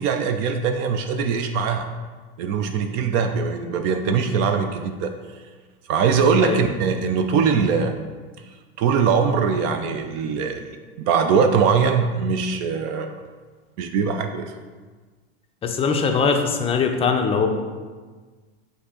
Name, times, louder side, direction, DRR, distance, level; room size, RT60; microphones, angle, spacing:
voice 1, 0.0-1.9 2.4-5.1 5.9-8.0 8.8-10.6 11.0-13.1 13.8-14.5, right 6 dB, 55° right, 6 dB, 0.4 m, -21 dB
voice 2, 15.6-17.5, left 5 dB, 20° left, 4 dB, 0.4 m, -21 dB
6.2 x 2.6 x 2.9 m, 1.4 s
supercardioid pair, 110°, 31 cm